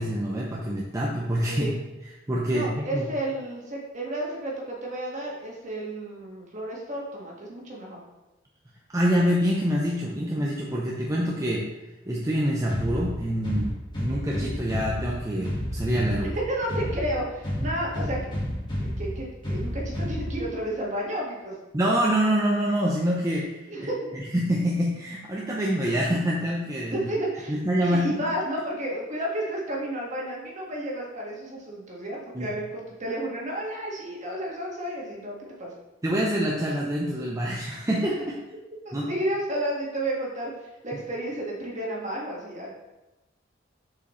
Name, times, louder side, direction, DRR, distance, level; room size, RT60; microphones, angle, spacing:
voice 1, 0.0-1.7 2.3-3.1 8.9-11.7 12.1-13.7 14.0-16.3 17.6-17.7 21.7-27.1 27.5-28.1 32.3-32.5 36.0-38.4 38.9-39.1, equal, 15° right, -3 dB, 0.6 m, -26 dB
voice 2, 2.5-8.0 16.2-18.3 18.8-21.5 23.7-24.0 26.9-35.7 38.8-42.7, right 1 dB, 40° right, -3 dB, 1.6 m, -32 dB
sound 1, 12.7-20.7, equal, 25° left, 1.6 m, -31 dB
6.7 x 4.8 x 3.1 m, 1.0 s
head